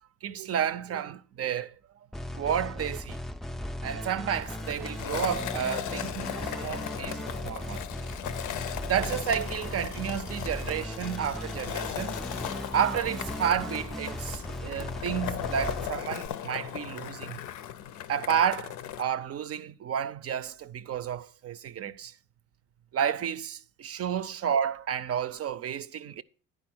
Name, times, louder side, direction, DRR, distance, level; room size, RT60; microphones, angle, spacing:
voice 1, 0.2-1.7 2.3-3.2 3.8-7.8 8.8-12.2 12.7-17.4 18.1-22.1 22.9-26.2, right 8 dB, 50° right, 0.5 m, -31 dB
sound 1, 2.1-16.3, left 1 dB, ahead, 0.4 m, -37 dB
Skateboard, 4.4-19.0, left 11 dB, 75° left, 0.6 m, -37 dB
9.8 x 4.5 x 6.0 m
supercardioid pair, 70°, 30 cm